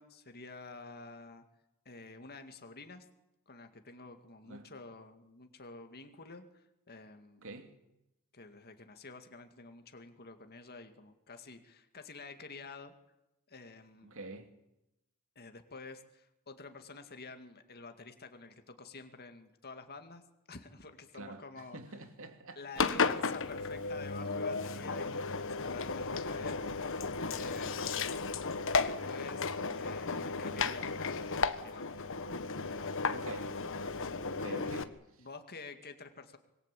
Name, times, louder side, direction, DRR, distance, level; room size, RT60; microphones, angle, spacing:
voice 1, 0.0-1.4 1.9-3.1 3.5-7.5 8.3-12.9 13.5-14.2 15.4-20.2 20.5-21.8 22.6-26.6 27.3-28.2 28.7-29.4 29.8-32.1 34.4-34.7 35.2-36.4, left 3 dB, 45° left, 2.2 m, -49 dB
voice 2, 7.4-7.7 14.0-14.5 21.1-22.9 33.1-33.5 34.3-35.3, right 2 dB, 65° right, 2.8 m, -47 dB
Engine, 22.8-34.8, left 4 dB, 60° left, 1.4 m, -34 dB
25.5 x 22.0 x 8.5 m
head